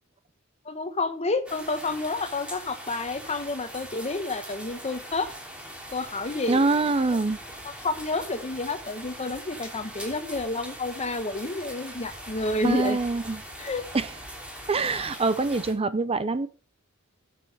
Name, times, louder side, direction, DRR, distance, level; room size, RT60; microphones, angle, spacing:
voice 1, 0.6-5.3 5.9-6.6 7.6-13.0 13.6-13.8, left 2 dB, 30° left, 10 dB, 1.1 m, -30 dB
sound 1, 1.5-15.7, equal, 5° right, 3.1 m, -41 dB
voice 2, 6.5-7.4 12.6-13.4 13.9-14.1 14.7-16.5, right 3 dB, 25° right, 14 dB, 0.5 m, -24 dB
9.8 x 6.9 x 5.4 m, 0.37 s
head